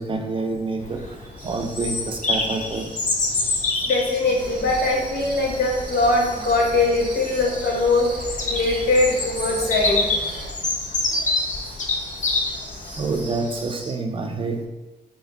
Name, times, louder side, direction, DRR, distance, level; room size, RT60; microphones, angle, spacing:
voice 1, 0.0-2.9 13.0-14.7, right 3 dB, 35° right, 4 dB, 0.4 m, -27 dB
Bird vocalization bird call bird song, 0.8-13.5, left 3 dB, 50° left, 0.5 m, -27 dB
sound 1, 1.4-13.9, right 1 dB, 10° left, 0.7 m, -43 dB
voice 2, 3.8-8.1 8.4-10.1 11.1-11.5, left 2 dB, 85° left, -1 dB, 0.8 m, -21 dB
sound 2, 4.4-10.5, right 2 dB, 85° right, 0.5 m, -36 dB
2.6 x 2.5 x 3.7 m, 1.1 s
cardioid pair, 105°, 16 cm